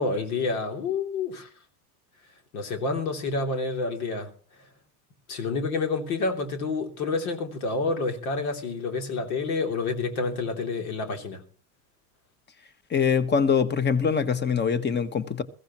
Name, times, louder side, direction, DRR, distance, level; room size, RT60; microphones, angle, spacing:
voice 1, 0.0-1.5 2.5-4.3 5.3-11.4, left 3 dB, 70° left, 3.2 m, -28 dB
voice 2, 12.9-15.4, left 6 dB, 25° left, 1.4 m, -23 dB
21.5 x 15.5 x 3.1 m
hypercardioid pair, 90°, 44 cm